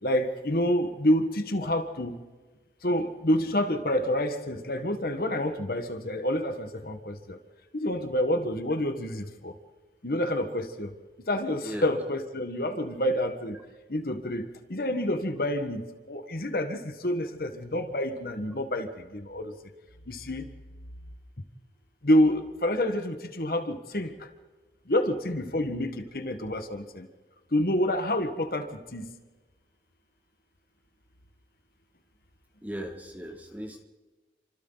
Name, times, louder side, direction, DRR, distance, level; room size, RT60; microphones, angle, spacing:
voice 1, 0.0-2.2 2.8-7.4 7.7-9.5 10.0-13.6 13.9-19.5 20.1-20.5 22.0-24.3 24.9-27.1 27.5-29.1, left 1 dB, 55° left, 8 dB, 1.4 m, -28 dB
voice 2, 32.6-33.8, equal, 10° right, 3 dB, 1.9 m, -37 dB
29.0 x 25.5 x 4.0 m, 1.3 s
head